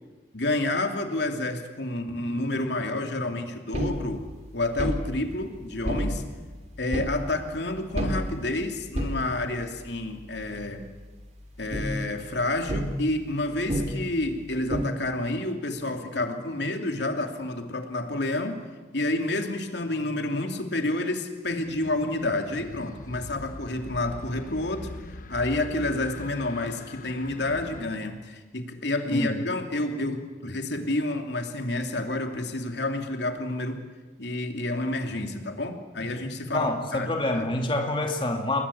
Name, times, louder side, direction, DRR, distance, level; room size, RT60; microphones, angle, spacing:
voice 1, 0.3-4.3 4.5-6.2 6.8-10.8 11.6-18.6 18.9-24.9 25.3-33.8 34.2-37.5, left 2 dB, 70° left, 5 dB, 2.8 m, -29 dB
sound 1, 3.7-10.6 11.0-11.1 11.4-14.8, equal, 40° right, 3.1 m, -31 dB
sound 2, 21.6-27.9, left 1 dB, 45° left, 1.3 m, -42 dB
voice 2, 36.5-38.6, left 1 dB, 25° left, 3 dB, 2.4 m, -27 dB
30.0 x 21.5 x 8.5 m, 1.3 s
head